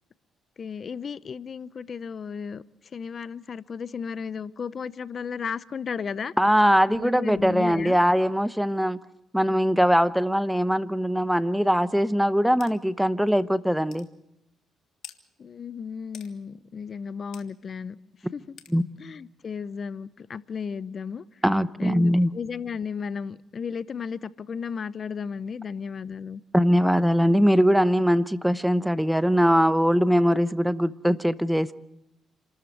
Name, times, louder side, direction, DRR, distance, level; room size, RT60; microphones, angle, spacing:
voice 1, 0.6-2.6 2.9-6.3 6.9-8.0 15.4-18.0 18.3-18.6 19.0-21.4 21.8-26.4, left 6 dB, 45° left, 0.8 m, -34 dB
voice 2, 6.4-9.0 9.3-14.1 18.7-18.8 21.4-22.3 26.5-31.7, equal, ahead, 0.8 m, -21 dB
sound 1, 12.6-12.7 13.3-13.4 13.9-14.1 15.0-15.2 16.1-16.3 17.3-17.5 18.6-18.7, left 10 dB, 75° left, 1.8 m, -45 dB
27.5 x 13.5 x 9.3 m
cardioid pair, 90°, 0 cm